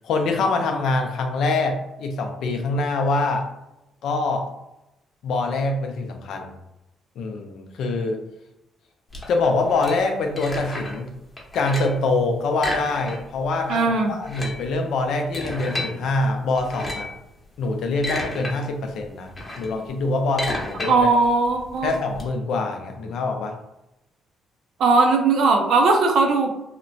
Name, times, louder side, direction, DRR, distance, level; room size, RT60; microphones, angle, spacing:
voice 1, 0.0-3.5 4.0-4.5 5.2-6.5 7.2-8.2 9.3-11.1 11.5-17.1 17.6-21.1 21.8-23.5, left 3 dB, 75° left, 3 dB, 0.4 m, -24 dB
sound 1, 9.1-11.1 11.4-12.0 12.5-13.5 13.7-13.8 14.1-15.9 16.6-17.2 17.7-18.5 18.9-22.2, left 1 dB, 25° left, 0.8 m, -32 dB
voice 2, 13.7-14.1 20.9-21.9 24.8-26.5, right 3 dB, 75° right, 3 dB, 0.5 m, -18 dB
2.8 x 2.1 x 2.6 m, 0.90 s
cardioid pair, 90°, 0 cm